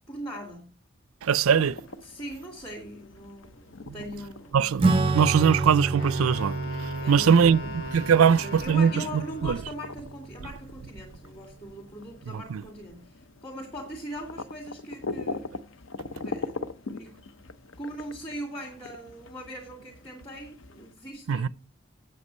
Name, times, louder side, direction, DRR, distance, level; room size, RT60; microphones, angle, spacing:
voice 1, 0.1-0.7 2.0-4.6 7.0-7.9 8.2-15.6 16.1-16.6 16.9-17.4 17.8-21.5, equal, 25° left, 2.6 m, -40 dB
voice 2, 1.2-1.8 3.9-4.0 4.5-9.6 12.3-12.6 21.3-21.5, right 7 dB, 85° right, 0.4 m, -22 dB
sound 1, 1.6-20.9, left 3 dB, 70° left, 0.7 m, -42 dB
Acoustic guitar / Strum, 4.8-10.7, right 3 dB, 25° right, 0.5 m, -29 dB
Wind instrument woodwind instrument, 6.0-9.7, left 1 dB, 85° left, 2.1 m, -40 dB
8.2 x 7.7 x 5.4 m
head